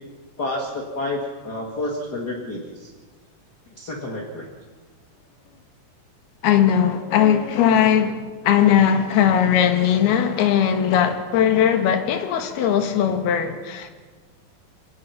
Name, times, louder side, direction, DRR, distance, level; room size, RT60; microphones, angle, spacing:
voice 1, 0.4-2.9 3.8-4.5, left 2 dB, 35° left, 1.9 m, -29 dB
voice 2, 6.4-13.9, left 9 dB, 90° left, 3.5 m, -19 dB
25.0 x 18.5 x 5.9 m
omnidirectional pair, 4.4 m